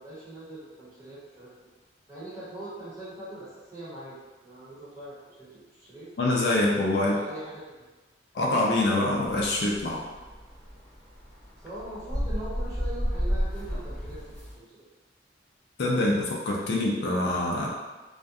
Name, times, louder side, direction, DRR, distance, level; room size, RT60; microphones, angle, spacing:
voice 1, 0.0-1.5 2.1-6.1 7.0-7.8 11.6-14.6, right 1 dB, 20° right, -10 dB, 1.0 m, -42 dB
voice 2, 6.2-7.1 8.3-10.0 15.8-17.7, left 2 dB, 60° left, -2 dB, 0.4 m, -25 dB
sound 1, 9.3-14.5, equal, 5° left, 0.6 m, -31 dB
2.4 x 2.2 x 2.6 m, 1.2 s
head